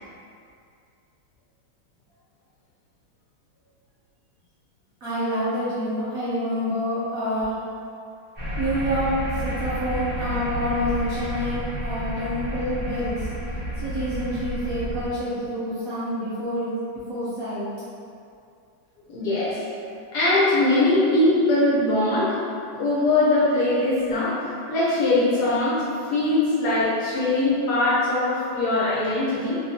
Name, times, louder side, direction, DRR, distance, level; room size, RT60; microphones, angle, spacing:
voice 1, 5.0-7.5 8.6-13.3 13.8-16.8 17.1-17.7, equal, 60° right, -11 dB, 1.0 m, -27 dB
sound 1, 8.3-15.1, equal, 40° right, 0.4 m, -30 dB
voice 2, 19.1-19.6 20.1-22.4 22.7-25.8 26.1-29.6, left 2 dB, 65° left, -9 dB, 1.1 m, -21 dB
3.0 x 3.0 x 2.7 m, 2.4 s
omnidirectional pair, 2.1 m